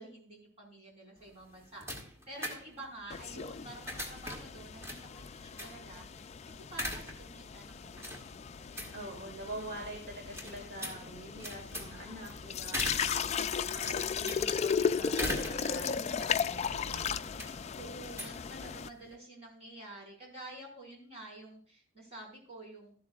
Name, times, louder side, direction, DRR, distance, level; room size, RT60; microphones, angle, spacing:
voice 1, 0.0-9.0 13.0-14.2 17.7-22.9, right 2 dB, 30° right, -1 dB, 4.8 m, -50 dB
sound 1, 1.2-19.1, left 1 dB, 15° right, 1.8 m, -43 dB
sound 2, 3.1-18.9, left 6 dB, 30° left, 0.4 m, -36 dB
voice 2, 8.9-13.2 13.9-17.1, right 1 dB, 55° right, 0 dB, 2.8 m, -45 dB
13.5 x 12.0 x 2.4 m, 0.43 s
head